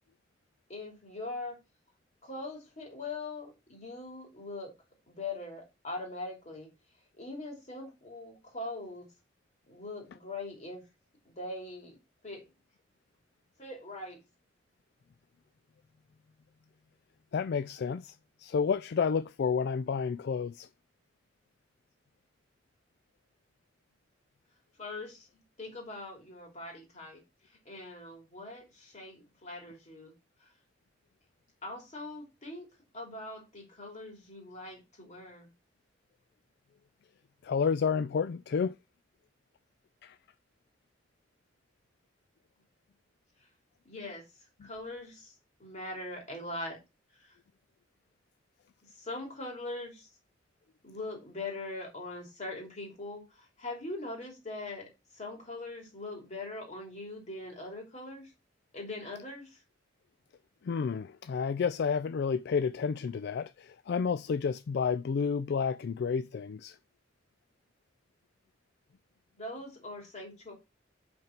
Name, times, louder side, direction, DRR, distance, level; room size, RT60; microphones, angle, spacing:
voice 1, 0.7-1.6 2.2-4.7 5.1-6.7 7.2-9.1 9.7-10.8 11.2-12.0 12.2-12.4 13.6-14.2 24.8-27.2 27.6-30.1 31.6-32.7 32.9-35.5 43.8-44.2 44.6-45.3 45.6-46.8 47.2-47.3 48.9-50.1 50.8-58.3 58.7-59.6 69.4-70.5, left 2 dB, 40° left, 3.2 m, -41 dB
voice 2, 17.3-18.1 18.4-20.7 37.4-38.8 40.0-40.2 44.6-44.7 60.6-66.8, left 6 dB, 60° left, 0.3 m, -30 dB
5.6 x 5.3 x 5.8 m
head